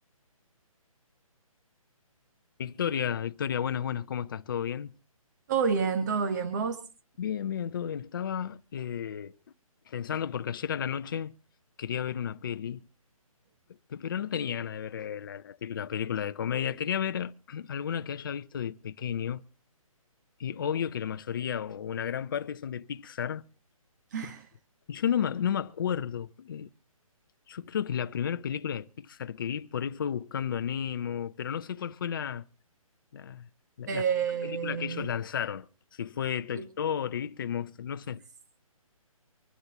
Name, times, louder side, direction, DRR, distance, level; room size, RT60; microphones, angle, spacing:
voice 1, 2.6-4.9 7.2-9.4 9.9-11.3 11.8-12.8 13.9-19.4 20.4-23.4 24.9-26.7 27.5-32.4 33.1-33.5 33.8-34.0 34.5-38.2, left 8 dB, 35° left, 0.7 m, -32 dB
voice 2, 5.5-6.8 24.1-24.5 33.9-35.1 36.5-36.7, right 6 dB, 30° right, 1.2 m, -29 dB
25.0 x 12.0 x 2.9 m
hypercardioid pair, 165°, 18 cm